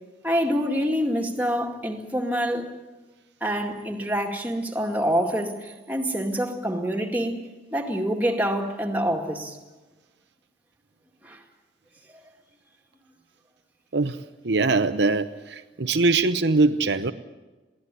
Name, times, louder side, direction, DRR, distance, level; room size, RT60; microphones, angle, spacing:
voice 1, 0.2-2.7 3.4-7.4 7.7-9.6 11.2-11.4, equal, 10° right, 2.1 m, -26 dB
voice 2, 14.4-17.1, right 3 dB, 70° right, 0.8 m, -22 dB
22.5 x 16.5 x 9.9 m
head